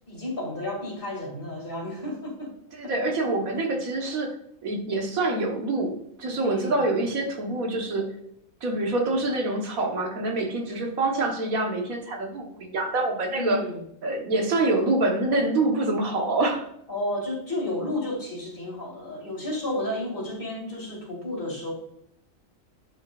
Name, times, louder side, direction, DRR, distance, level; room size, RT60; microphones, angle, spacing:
voice 1, 0.1-2.5 2.8-2.9 3.2-3.3 6.4-6.8 13.3-13.8 16.9-21.7, left 1 dB, 40° left, -1 dB, 2.6 m, -32 dB
voice 2, 2.7-4.3 4.6-8.1 8.6-13.6 14.0-16.7, right 2 dB, 90° right, 2 dB, 1.7 m, -26 dB
11.0 x 5.8 x 2.4 m, 0.76 s
omnidirectional pair, 1.4 m